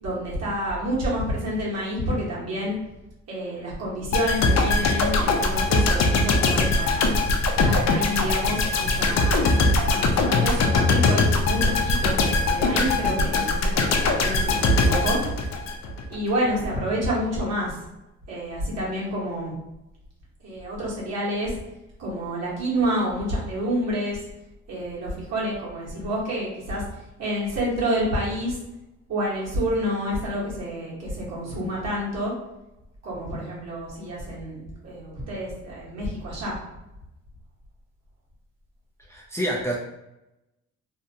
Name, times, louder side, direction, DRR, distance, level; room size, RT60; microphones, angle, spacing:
voice 1, 0.0-2.8 3.3-7.1 7.6-9.5 9.9-15.2 16.1-17.8 18.3-19.5 20.4-21.6 22.0-24.2 24.7-26.8 27.2-28.6 29.1-32.3 33.0-36.6, equal, 60° right, -6 dB, 1.3 m, -28 dB
sound 1, 4.1-16.1 16.4-16.6, left 3 dB, 60° left, 0.5 m, -21 dB
voice 2, 39.1-39.7, equal, 10° left, -3 dB, 0.4 m, -27 dB
2.8 x 2.2 x 2.8 m, 0.92 s
cardioid pair, 90°, 30 cm